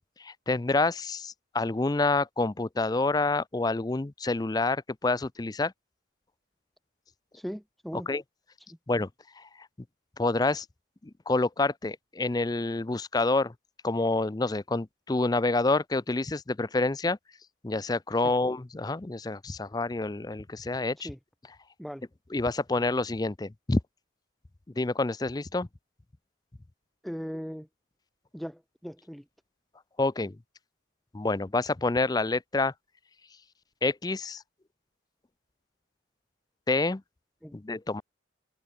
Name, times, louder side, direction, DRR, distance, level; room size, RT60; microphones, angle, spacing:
voice 1, 0.0-5.7 7.9-8.2 8.9-9.1 9.4-9.5 10.2-10.7 11.3-13.5 13.8-17.2 17.6-21.1 22.3-23.8 24.8-25.7 30.0-30.4 31.1-32.7 33.8-34.4 36.7-37.0 37.5-38.0, left 3 dB, 20° left, 0.4 m, -28 dB
voice 2, 7.3-8.1 18.2-18.3 21.0-21.2 21.8-22.0 27.0-27.7 28.3-29.2 37.4-37.6, equal, ahead, 2.6 m, -38 dB
head